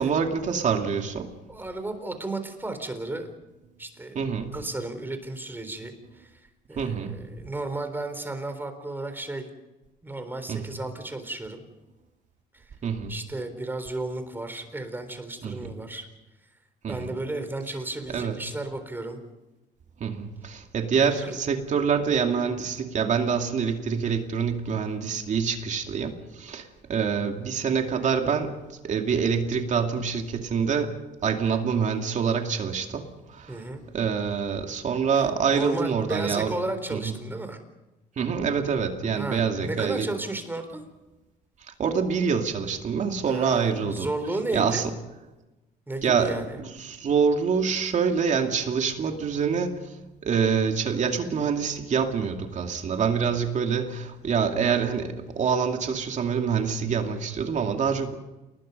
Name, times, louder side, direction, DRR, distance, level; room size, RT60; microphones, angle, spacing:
voice 1, 0.0-1.3 4.1-4.6 6.8-7.2 10.5-10.7 12.8-13.1 15.4-15.7 16.8-17.1 18.1-18.5 20.0-33.6 33.9-36.5 36.9-37.1 38.2-40.1 41.6-44.1 44.5-44.9 46.0-50.0 50.2-58.1, right 6 dB, 45° right, 4 dB, 2.5 m, -26 dB
voice 2, 1.5-3.3 3.8-4.2 4.5-9.5 10.0-11.6 12.5-12.7 13.1-16.1 16.9-19.2 21.0-21.4 33.5-33.8 35.5-37.6 39.1-40.8 43.3-44.9 45.9-46.6, right 2 dB, 10° right, 8 dB, 3.8 m, -33 dB
28.5 x 20.5 x 5.4 m, 1.0 s
cardioid pair, 110°, 17 cm